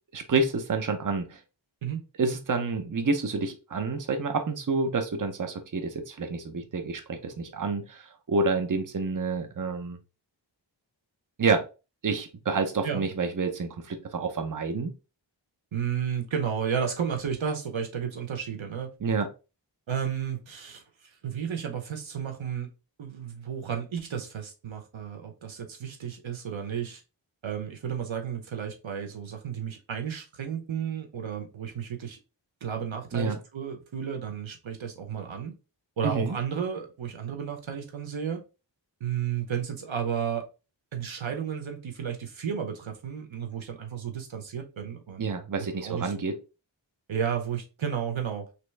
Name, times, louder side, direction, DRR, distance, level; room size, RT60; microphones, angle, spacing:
voice 1, 0.1-1.4 2.2-10.0 11.4-11.6 12.0-14.9 19.0-19.3 33.1-33.4 36.0-36.4 45.2-46.4, right 4 dB, 45° right, 0.7 m, -28 dB
voice 2, 15.7-18.9 19.9-22.7 23.0-27.0 27.4-32.2 32.6-35.5 36.0-38.4 39.0-40.5 40.9-45.3 45.8-46.1 47.1-48.5, right 8 dB, 80° right, 0.8 m, -32 dB
3.1 x 2.9 x 3.2 m
wide cardioid pair, 55°, 46 cm